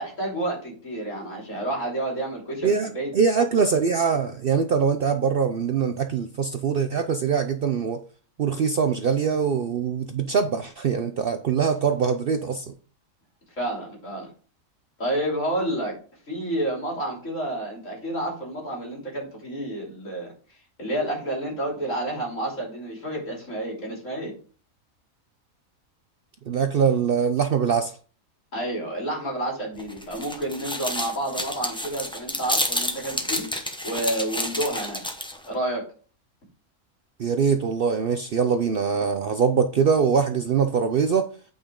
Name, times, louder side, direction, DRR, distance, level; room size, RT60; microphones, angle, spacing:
voice 1, 0.0-3.1 13.6-14.3 15.0-16.0 16.3-20.3 20.8-24.3 28.5-33.5 33.8-35.0 35.5-35.9, right 1 dB, 65° left, -2 dB, 3.6 m, -29 dB
voice 2, 2.6-8.0 8.4-12.7 26.5-27.9 37.2-41.3, right 6 dB, 60° right, 7 dB, 0.6 m, -23 dB
sound 1, 29.8-35.5, left 1 dB, 5° left, 0.8 m, -30 dB
8.9 x 5.3 x 3.7 m, 0.40 s
omnidirectional pair, 1.4 m